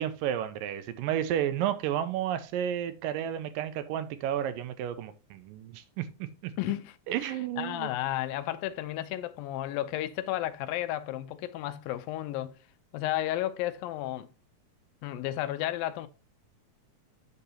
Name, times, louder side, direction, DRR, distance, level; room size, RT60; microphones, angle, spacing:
voice 1, 0.0-6.1 6.4-6.5 7.1-7.9, right 10 dB, 80° right, 2.2 m, -31 dB
voice 2, 6.6-7.0 7.2-12.5 12.9-14.3 15.0-16.1, left 14 dB, 80° left, 2.4 m, -33 dB
8.5 x 6.8 x 2.8 m
omnidirectional pair, 4.2 m